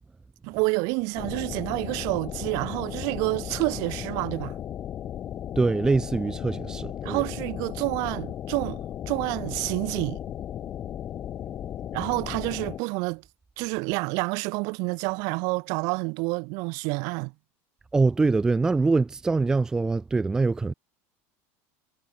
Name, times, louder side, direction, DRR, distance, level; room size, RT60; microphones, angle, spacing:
voice 1, 0.4-4.6 7.0-10.2 11.9-13.2 13.6-17.3, right 31 dB, 55° right, 0.8 m, -28 dB
sound 1, 1.2-12.8, left 10 dB, 25° left, 1.6 m, -35 dB
voice 2, 5.6-7.2 17.9-20.7, right 3 dB, 10° right, 0.5 m, -24 dB
cardioid pair, 170°, 7 cm